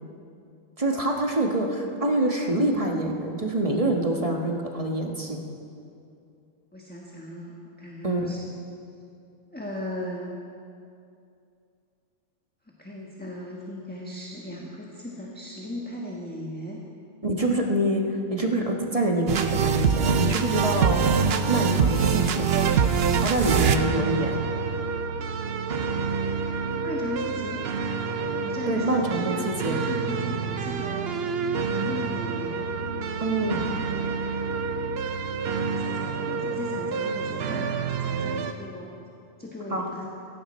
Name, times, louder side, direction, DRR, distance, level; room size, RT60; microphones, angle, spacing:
voice 1, 0.8-5.4 8.0-8.4 17.2-18.0 18.3-21.0 21.5-22.5 23.2-24.3 28.7-29.8 33.2-33.7 39.7-39.9, right 1 dB, 30° right, 1 dB, 1.4 m, -25 dB
voice 2, 6.7-8.4 9.5-10.3 12.8-16.8 26.8-27.6 28.4-31.1 31.7-32.7 35.7-37.7 38.0-38.9 39.4-40.0, left 1 dB, 10° left, -3 dB, 1.3 m, -37 dB
sound 1, 19.3-38.5, right 6 dB, 55° right, 0.9 m, -26 dB
17.0 x 15.5 x 4.3 m, 2.5 s
omnidirectional pair, 1.3 m